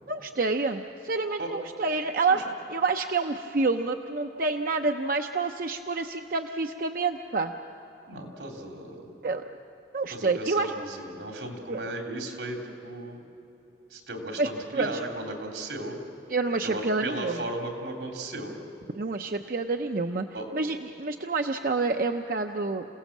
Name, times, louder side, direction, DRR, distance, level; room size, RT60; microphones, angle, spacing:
voice 1, 0.1-2.4 2.7-7.5 9.2-9.4 9.9-10.7 11.7-11.8 14.4-15.0 16.3-17.4 18.9-20.3 20.5-22.9, right 3 dB, 50° right, 5 dB, 0.6 m, -28 dB
voice 2, 8.1-9.1 10.1-13.2 13.9-16.0 16.6-18.6 20.3-20.5, right 1 dB, 85° right, 2 dB, 3.2 m, -36 dB
28.5 x 17.0 x 7.3 m, 2.9 s
head